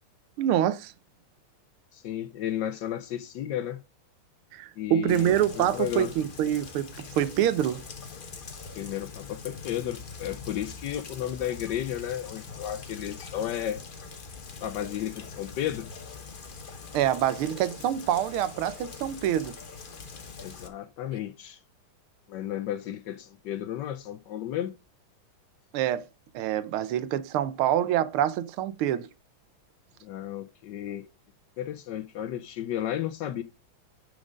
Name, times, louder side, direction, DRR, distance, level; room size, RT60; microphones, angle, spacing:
voice 1, 0.4-0.9 4.5-7.8 16.9-19.5 25.7-26.1 26.3-29.1, right 11 dB, 90° right, 1.6 m, -26 dB
voice 2, 1.9-3.8 4.8-6.1 8.7-13.8 14.6-15.9 20.4-21.6 22.3-24.7 30.0-31.1 31.6-33.4, left 11 dB, 70° left, 1.1 m, -33 dB
Rain, 5.1-20.7, left 5 dB, 50° left, 0.6 m, -43 dB
9.9 x 5.1 x 5.0 m
omnidirectional pair, 2.3 m